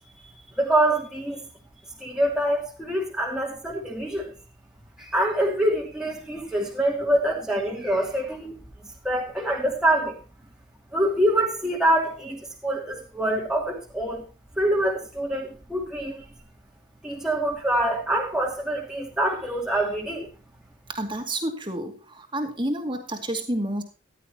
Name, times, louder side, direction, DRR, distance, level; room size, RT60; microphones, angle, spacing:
voice 1, 0.2-1.5 2.0-4.3 5.0-8.5 9.0-10.1 10.9-14.2 14.6-16.2 17.0-20.3, right 1 dB, 5° right, -2 dB, 2.6 m, -25 dB
voice 2, 20.9-23.8, right 1 dB, 25° right, 4 dB, 2.4 m, -29 dB
15.0 x 11.5 x 2.9 m, 0.31 s
head